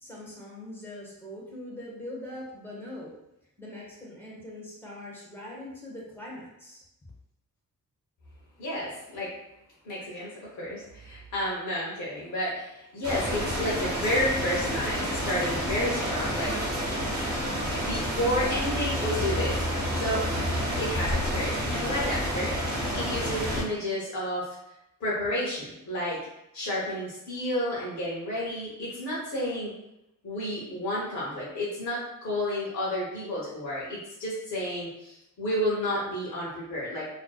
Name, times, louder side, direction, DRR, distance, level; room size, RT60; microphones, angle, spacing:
voice 1, 0.0-3.2 3.6-6.8, left 1 dB, 5° left, -5 dB, 0.6 m, -42 dB
voice 2, 8.6-9.3 9.8-16.6 17.4-20.3 20.8-24.5 25.0-26.2 26.5-29.7 30.2-37.1, left 1 dB, 60° left, -7 dB, 0.7 m, -31 dB
sound 1, 13.0-23.6, equal, 55° right, 0.9 m, -29 dB
2.5 x 2.1 x 2.2 m, 0.87 s
wide cardioid pair, 145°, 32 cm